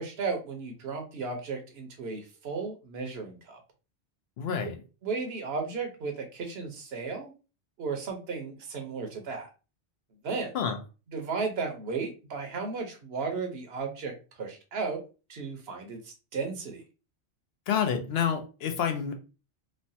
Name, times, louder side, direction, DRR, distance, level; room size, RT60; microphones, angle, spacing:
voice 1, 0.0-3.6 5.0-7.3 7.8-9.5 10.2-10.5 11.1-15.0 15.3-16.8, right 4 dB, 65° right, 4 dB, 0.9 m, -34 dB
voice 2, 4.4-4.8 10.5-10.8 17.7-19.1, left 7 dB, 70° left, 6 dB, 0.8 m, -28 dB
3.1 x 2.1 x 2.6 m, 0.32 s
omnidirectional pair, 1.2 m